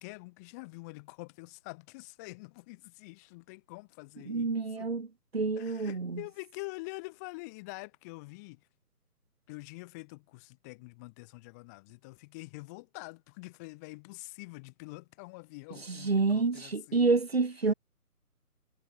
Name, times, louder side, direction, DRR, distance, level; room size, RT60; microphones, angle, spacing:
voice 1, 0.0-4.9 5.5-8.6 9.5-17.0 17.7-17.8, left 26 dB, 10° left, 1.4 m, -46 dB
voice 2, 4.3-5.1 5.3-6.2 15.9-17.7, right 4 dB, 45° right, 0.5 m, -28 dB
figure-of-eight pair, 145°, 47 cm